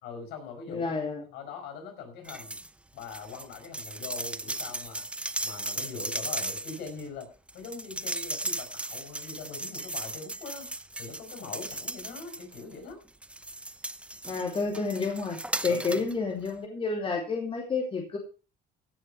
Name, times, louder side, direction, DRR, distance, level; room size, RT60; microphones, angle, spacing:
voice 1, 0.0-0.9 1.3-2.6 2.9-5.0 5.4-10.7 11.0-13.0 15.7-16.1, left 5 dB, 85° left, 5 dB, 5.3 m, -42 dB
voice 2, 0.7-1.2 14.3-18.2, left 4 dB, 30° left, 0 dB, 2.8 m, -30 dB
sound 1, 2.2-2.7 3.0-12.8 13.2-16.1 16.5-16.6, right 1 dB, 5° right, 0.8 m, -36 dB
16.5 x 6.6 x 5.6 m, 0.35 s
cardioid pair, 110°, 17 cm